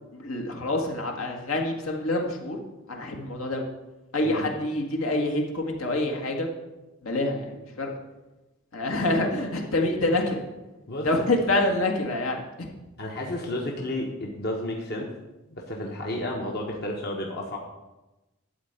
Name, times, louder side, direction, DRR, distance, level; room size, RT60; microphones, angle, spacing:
voice 1, 0.1-2.6 2.9-3.6 4.1-6.5 7.0-7.9 8.7-10.4 11.0-12.7, left 2 dB, 80° left, 1 dB, 1.8 m, -26 dB
voice 2, 13.0-15.1 15.5-17.6, left 1 dB, 50° left, 0 dB, 1.2 m, -32 dB
12.5 x 4.2 x 8.2 m, 1.1 s
head